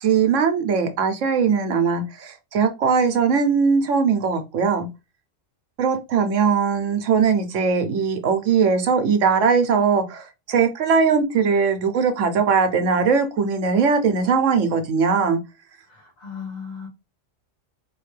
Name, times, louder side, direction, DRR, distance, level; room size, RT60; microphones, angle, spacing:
voice 1, 0.0-4.9 5.8-15.4, right 5 dB, 70° right, 1.1 m, -20 dB
voice 2, 15.9-16.9, left 6 dB, 35° left, 1.4 m, -36 dB
4.2 x 3.0 x 3.2 m
omnidirectional pair, 1.4 m